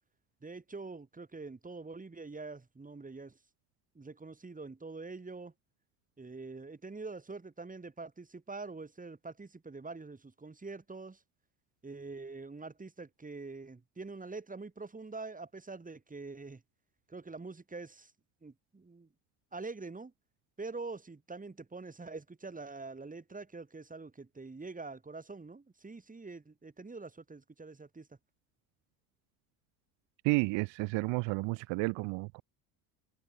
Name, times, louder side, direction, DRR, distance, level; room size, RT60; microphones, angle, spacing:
voice 1, 0.4-3.4 3.9-5.5 6.2-11.2 11.8-16.6 17.1-18.1 18.4-19.1 19.5-20.1 20.6-28.1, right 3 dB, 15° right, 6.1 m, -45 dB
voice 2, 30.2-32.4, right 26 dB, 70° right, 2.7 m, -31 dB
supercardioid pair, 80°, 45 cm